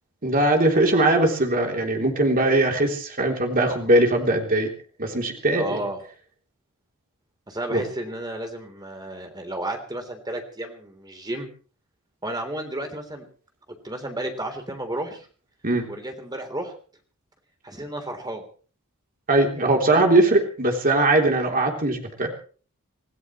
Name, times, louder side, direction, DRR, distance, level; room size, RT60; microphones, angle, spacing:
voice 1, 0.2-4.7 5.0-5.8 7.7-7.8 15.6-15.9 19.3-22.3, right 2 dB, 40° right, 2 dB, 3.4 m, -20 dB
voice 2, 5.5-6.0 7.5-11.5 12.2-13.3 13.7-15.3 15.9-16.7 17.6-18.5, right 1 dB, 20° right, 4 dB, 3.7 m, -32 dB
26.5 x 17.0 x 3.2 m, 0.40 s
head